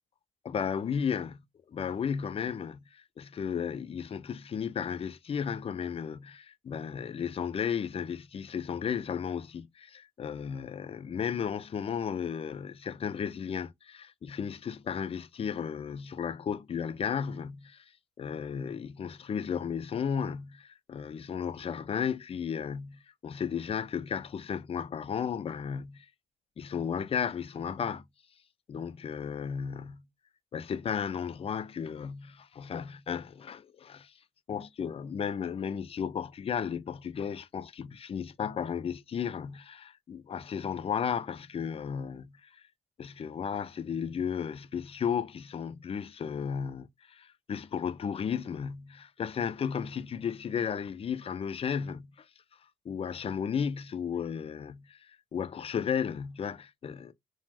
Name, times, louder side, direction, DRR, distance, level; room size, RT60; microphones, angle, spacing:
voice 1, 0.4-1.4 1.7-17.8 18.2-26.1 26.6-28.0 28.7-30.0 30.5-34.1 34.5-42.6 43.0-52.1 52.9-57.1, left 7 dB, 30° left, 0.4 m, -34 dB
2.4 x 2.0 x 3.3 m
cardioid pair, 90°, 20 cm